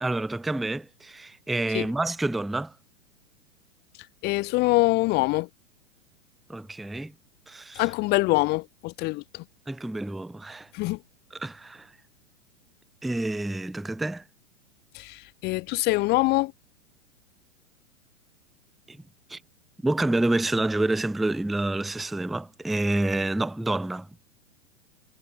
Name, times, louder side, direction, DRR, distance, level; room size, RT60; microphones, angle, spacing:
voice 1, 0.0-2.7 6.5-7.1 7.5-7.8 9.7-10.7 11.4-11.9 13.0-14.2 18.9-19.0 19.3-19.4 19.8-24.1, right 2 dB, ahead, 0.3 m, -28 dB
voice 2, 4.2-5.5 7.7-9.4 10.7-11.0 14.9-16.5, left 22 dB, 25° left, 1.1 m, -24 dB
figure-of-eight pair, 105°, 39 cm